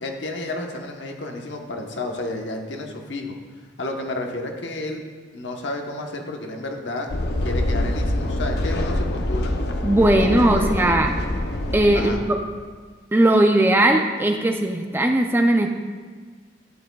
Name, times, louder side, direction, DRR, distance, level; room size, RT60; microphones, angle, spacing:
voice 1, 0.0-3.4 3.8-5.0 5.3-7.1 7.4-9.5 10.0-10.9 11.9-12.2, left 2 dB, 75° left, 2 dB, 1.1 m, -31 dB
sound 1, 7.1-12.1, left 1 dB, 60° left, 0.7 m, -25 dB
voice 2, 9.8-11.2 11.7-12.4 13.1-15.7, right 1 dB, 10° right, 4 dB, 0.4 m, -18 dB
12.5 x 9.3 x 2.3 m, 1.5 s
head